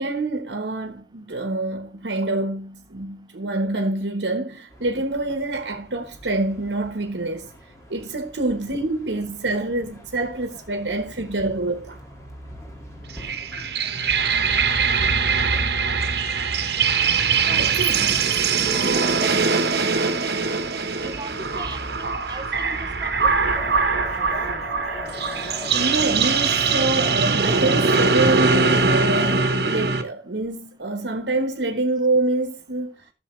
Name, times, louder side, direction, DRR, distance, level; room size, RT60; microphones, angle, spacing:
voice 1, 0.0-7.5 7.9-12.0 17.6-18.2 25.7-33.0, right 2 dB, 90° right, 1.2 m, -26 dB
sound 1, 4.7-22.1, equal, 20° left, 2.1 m, -45 dB
sound 2, 13.1-30.0, right 4 dB, 65° right, 1.2 m, -22 dB
voice 2, 21.0-23.3, right 2 dB, 25° right, 0.8 m, -38 dB
sound 3, 23.5-29.4, left 1 dB, 40° left, 3.8 m, -36 dB
13.5 x 7.0 x 3.2 m
head